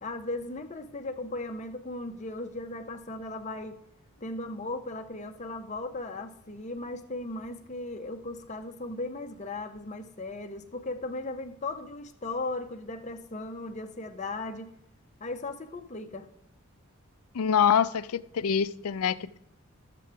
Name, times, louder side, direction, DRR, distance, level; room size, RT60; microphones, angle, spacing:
voice 1, 0.0-3.8 4.2-14.7 15.2-16.3, left 2 dB, 30° left, 7 dB, 0.6 m, -37 dB
voice 2, 17.3-19.4, left 7 dB, 85° left, 15 dB, 0.4 m, -25 dB
12.0 x 7.6 x 3.4 m, 0.78 s
head